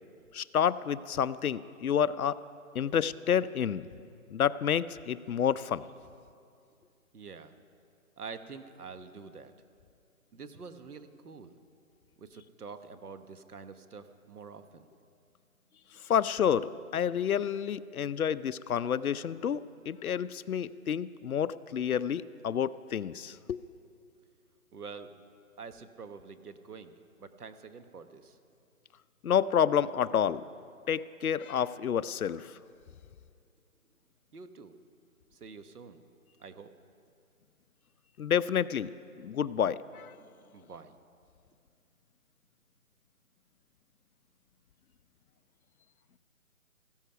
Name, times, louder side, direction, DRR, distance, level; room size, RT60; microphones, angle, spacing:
voice 1, 0.3-2.4 2.7-3.9 4.3-5.9 16.1-19.6 19.9-23.6 29.2-30.4 30.9-32.5 38.2-38.9 39.2-40.1, left 8 dB, 75° left, 16 dB, 0.6 m, -29 dB
voice 2, 7.1-7.5 8.2-9.5 10.3-11.5 12.2-14.9 24.7-25.1 25.6-26.9 27.2-28.4 34.3-34.7 35.3-36.0 36.4-36.7 40.2-41.0, right 5 dB, 90° right, 10 dB, 1.2 m, -46 dB
15.5 x 13.5 x 5.7 m, 2.4 s
hypercardioid pair, 175°, 44 cm